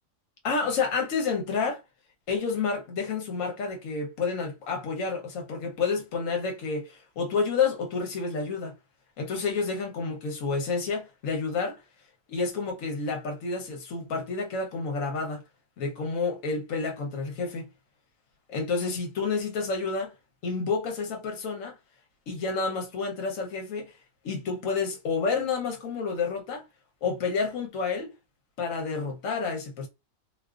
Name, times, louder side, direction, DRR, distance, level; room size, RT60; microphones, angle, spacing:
voice 1, 0.4-1.8 2.3-8.7 9.2-11.8 12.3-15.4 15.8-17.7 18.5-20.1 20.4-21.8 22.3-23.9 24.2-26.6 27.0-28.1 28.6-29.9, left 4 dB, 75° left, 1.1 m, -29 dB
2.4 x 2.4 x 2.3 m
omnidirectional pair, 1.4 m